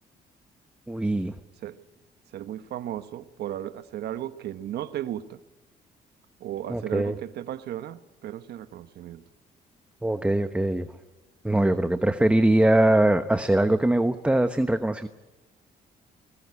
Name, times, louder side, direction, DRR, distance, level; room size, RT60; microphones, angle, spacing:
voice 1, 0.9-1.3 6.7-7.2 10.0-10.9 11.4-15.1, right 1 dB, 5° right, 9 dB, 1.0 m, -22 dB
voice 2, 2.3-5.4 6.4-9.2, right 12 dB, 80° right, 11 dB, 1.2 m, -35 dB
21.0 x 19.0 x 9.8 m, 1.1 s
cardioid pair, 105°, 17 cm